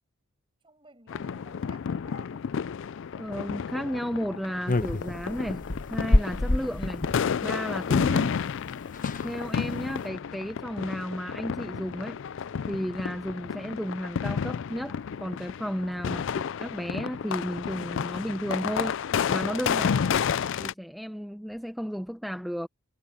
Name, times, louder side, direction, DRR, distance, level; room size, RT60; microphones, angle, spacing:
voice 1, 0.6-2.5, right 2 dB, 25° right, 6.0 m, -55 dB
sound 1, 1.1-20.7, left 7 dB, 60° left, 0.4 m, -31 dB
voice 2, 3.1-7.0 7.4-8.4 9.2-12.2 12.7-19.0 19.3-19.9 20.6-22.7, equal, ahead, 0.6 m, -33 dB
sound 2, 4.7-7.2 8.4-8.5 8.7-8.8 8.9-9.3 9.8-10.0, left 1 dB, 35° left, 1.0 m, -27 dB
head